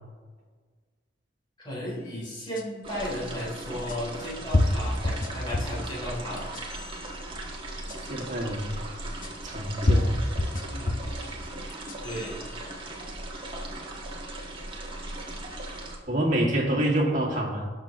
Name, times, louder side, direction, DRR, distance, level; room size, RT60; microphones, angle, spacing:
voice 1, 1.6-6.5 10.7-11.0 12.0-12.4, equal, 25° left, -5 dB, 3.2 m, -35 dB
sound 1, 2.6-2.7 3.9-4.0 4.5-5.8 6.4-6.9 7.9-8.0 9.2-9.3 9.9-11.2 11.7-12.3, left 1 dB, 45° left, 0.9 m, -26 dB
sound 2, 2.8-16.0, right 1 dB, 30° right, 1.6 m, -38 dB
voice 2, 8.0-8.8 9.4-10.2 16.1-17.7, right 1 dB, 45° right, -1 dB, 2.0 m, -27 dB
18.5 x 6.5 x 3.0 m, 1.5 s
head